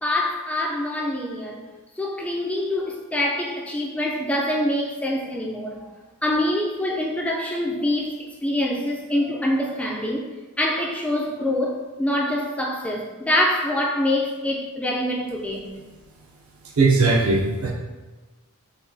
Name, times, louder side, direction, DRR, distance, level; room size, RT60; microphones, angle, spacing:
voice 1, 0.0-1.6 2.0-5.8 6.2-8.1 8.4-10.2 10.6-15.7, left 1 dB, 5° left, -1 dB, 0.3 m, -25 dB
voice 2, 16.8-17.7, right 3 dB, 65° right, -1 dB, 0.5 m, -18 dB
5.0 x 2.2 x 2.6 m, 1.2 s
head